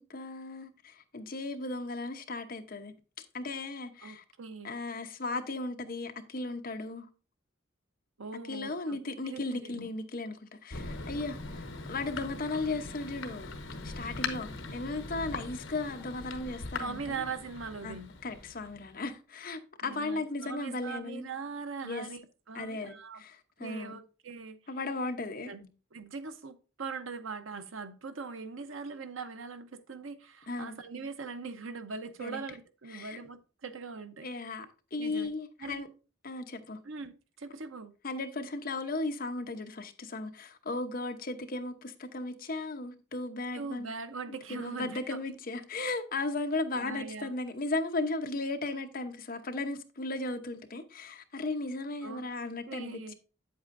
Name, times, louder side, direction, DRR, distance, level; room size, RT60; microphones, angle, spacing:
voice 1, 0.0-2.9 3.3-4.2 4.6-7.1 8.5-13.5 13.8-17.2 17.8-17.9 18.2-21.3 21.8-22.1 22.5-24.0 24.7-25.7 30.5-30.8 32.2-32.4 32.9-33.2 34.2-35.9 36.2-36.8 38.0-43.9 44.5-53.1, left 2 dB, 45° left, 0.8 m, -36 dB
voice 2, 4.0-4.7 8.2-9.0 9.2-9.9 16.8-18.1 19.8-22.2 22.5-23.2 23.6-24.6 25.4-25.6 25.9-34.3 35.0-35.3 35.6-35.8 36.8-37.9 43.5-45.2 46.7-47.3 52.0-52.2 52.7-53.1, right 5 dB, 80° right, 0.8 m, -41 dB
Thunder, 10.7-19.0, left 3 dB, 70° left, 1.0 m, -41 dB
8.2 x 7.9 x 2.6 m
head